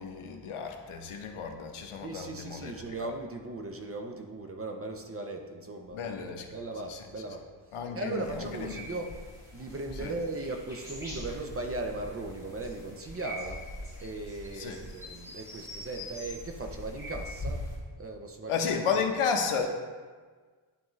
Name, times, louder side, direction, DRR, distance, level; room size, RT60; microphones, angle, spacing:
voice 1, 0.0-3.1 5.9-6.6 6.9-7.0 7.7-8.8 10.0-10.1 14.5-14.8 18.5-19.7, left 6 dB, 85° left, 4 dB, 0.9 m, -33 dB
voice 2, 2.0-7.4 7.9-9.1 9.5-13.6 14.0-17.6 18.0-18.6, right 2 dB, 30° right, 3 dB, 0.4 m, -38 dB
sound 1, 8.2-17.8, left 1 dB, 5° right, 2.0 m, -42 dB
10.5 x 3.6 x 3.1 m, 1.5 s
wide cardioid pair, 170°, 49 cm